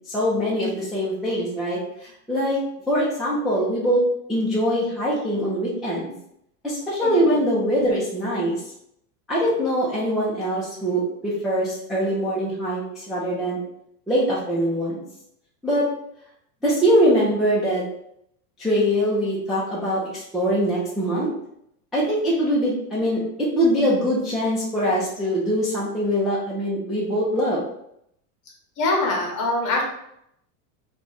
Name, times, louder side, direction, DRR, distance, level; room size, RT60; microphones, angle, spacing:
voice 1, 0.1-1.8 2.3-2.6 2.9-4.0 4.3-6.1 6.6-8.6 9.3-13.6 14.1-15.0 15.6-15.8 16.6-17.8 18.6-21.3 21.9-27.6, equal, ahead, -9 dB, 0.6 m, -23 dB
voice 2, 7.0-7.4 28.8-29.8, left 2 dB, 35° left, 0 dB, 1.1 m, -23 dB
3.1 x 2.5 x 3.8 m, 0.75 s
supercardioid pair, 140°, 50 cm